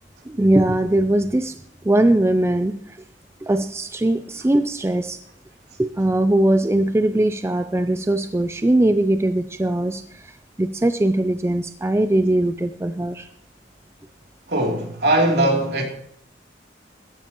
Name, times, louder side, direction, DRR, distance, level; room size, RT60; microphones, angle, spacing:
voice 1, 0.3-1.6 1.8-2.8 3.4-5.2 5.8-13.3, right 1 dB, 15° right, 0.4 m, -20 dB
voice 2, 14.5-15.8, right 1 dB, 60° right, 3.2 m, -20 dB
15.5 x 14.5 x 3.0 m
head